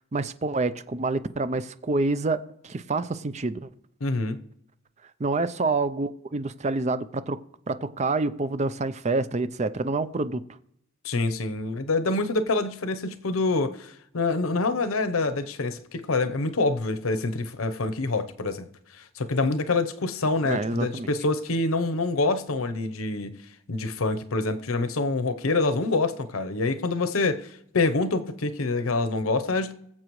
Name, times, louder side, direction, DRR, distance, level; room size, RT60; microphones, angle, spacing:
voice 1, 0.1-3.7 5.2-7.4 7.7-10.4 20.4-21.1, right 3 dB, 35° right, 0.5 m, -27 dB
voice 2, 4.0-4.4 11.0-18.7 19.0-23.4 23.7-29.7, left 3 dB, 90° left, 0.8 m, -26 dB
21.5 x 7.4 x 3.1 m
head